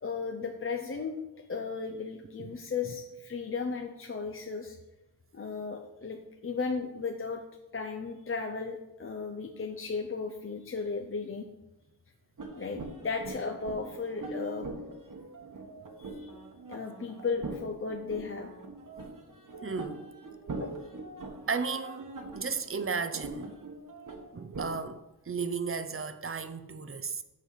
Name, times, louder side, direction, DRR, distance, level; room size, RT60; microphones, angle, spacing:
voice 1, 0.0-4.8 5.3-7.4 7.7-11.5 12.5-14.7 16.0-16.3 16.7-18.5 20.4-20.8, left 4 dB, 35° left, 0.6 m, -35 dB
sound 1, 12.4-24.8, right 2 dB, 50° right, 1.3 m, -42 dB
voice 2, 19.6-20.1 21.5-23.5 24.3-27.2, right 5 dB, 35° right, 0.5 m, -34 dB
6.4 x 5.4 x 6.7 m
wide cardioid pair, 115°, 40 cm